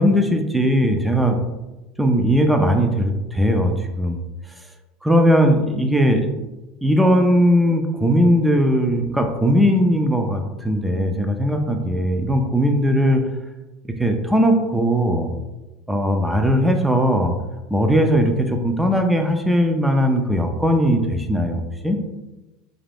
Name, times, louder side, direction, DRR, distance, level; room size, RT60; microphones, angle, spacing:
voice 1, 0.0-1.4 2.0-4.2 5.0-6.3 6.8-13.2 14.0-15.3 15.9-17.3 17.7-22.0, equal, 5° right, 4 dB, 0.4 m, -19 dB
2.5 x 2.0 x 3.3 m, 1.0 s
supercardioid pair, 115°, 0 cm